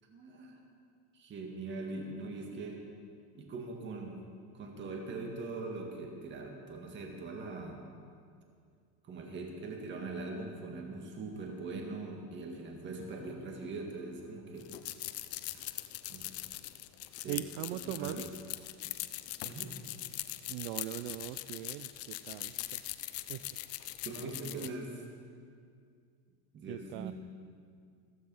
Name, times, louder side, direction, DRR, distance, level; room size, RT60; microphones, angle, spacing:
voice 1, 0.1-0.6 1.1-2.8 3.3-4.3 4.5-7.9 9.0-14.7 15.5-15.7 16.1-16.4 17.2-17.4 17.7-18.3 19.4-19.8 24.0-25.0 26.5-27.1, right 3 dB, 25° right, 1 dB, 1.9 m, -42 dB
sound 1, 14.6-24.7, left 16 dB, 35° left, 0.6 m, -41 dB
voice 2, 17.3-18.3 20.5-22.8 23.3-23.6 24.4-24.8 26.7-27.1, right 14 dB, 55° right, 12 dB, 0.5 m, -41 dB
15.0 x 14.5 x 5.5 m, 2.2 s
supercardioid pair, 145°, 42 cm